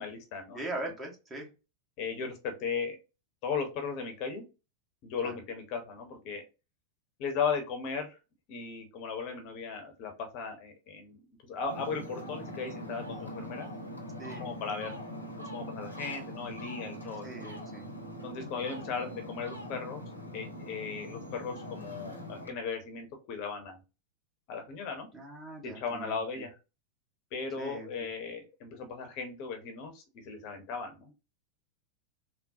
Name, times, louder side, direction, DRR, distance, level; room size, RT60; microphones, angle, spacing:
voice 1, 0.0-0.6 2.0-3.0 3.4-4.4 5.0-6.4 7.2-8.2 8.5-13.7 14.4-15.0 15.5-17.5 18.2-20.0 20.3-23.8 24.5-25.1 25.6-26.6 27.3-31.1, left 5 dB, 40° left, 4 dB, 0.8 m, -37 dB
voice 2, 0.5-1.5 5.2-5.3 14.2-14.5 17.2-17.9 25.1-26.4 27.6-28.1, right 2 dB, 20° right, 0 dB, 1.3 m, -41 dB
Ocean, 11.6-22.5, left 1 dB, 85° left, 0.9 m, -42 dB
3.7 x 2.1 x 2.7 m, 0.29 s
figure-of-eight pair, 90°, 0 cm